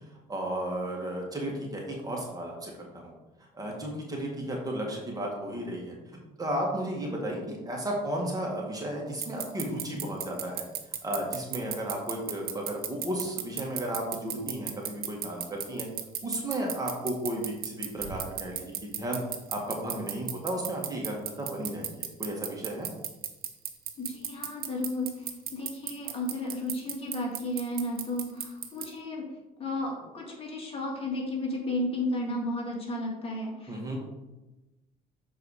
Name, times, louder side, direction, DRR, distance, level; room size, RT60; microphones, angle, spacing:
voice 1, 0.3-3.1 3.5-6.0 6.4-10.7 11.0-15.9 16.2-19.2 19.5-22.9 33.7-34.0, right 1 dB, 20° right, -1 dB, 1.8 m, -34 dB
sound 1, 9.2-28.9, right 10 dB, 65° right, 1.0 m, -33 dB
voice 2, 24.0-29.3 29.6-34.0, left 1 dB, 35° left, -2 dB, 2.2 m, -33 dB
6.9 x 4.7 x 4.8 m, 1.0 s
cardioid pair, 110°, 17 cm